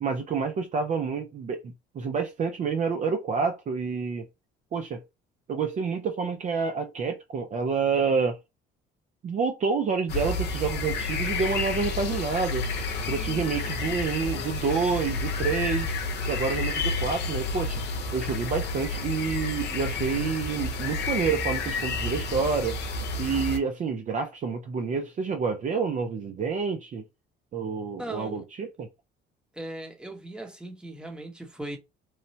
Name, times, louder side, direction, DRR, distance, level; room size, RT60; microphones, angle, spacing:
voice 1, 0.0-4.3 4.7-5.0 5.5-8.4 9.2-12.7 13.1-15.9 16.3-17.8 18.1-22.8 23.2-27.0 27.5-28.9, right 5 dB, 40° right, 0.5 m, -28 dB
sound 1, 10.1-23.6, left 3 dB, 60° left, 0.7 m, -30 dB
voice 2, 28.0-28.5 29.5-31.8, right 1 dB, 5° right, 0.9 m, -38 dB
3.1 x 2.1 x 2.7 m
cardioid pair, 110°, 20 cm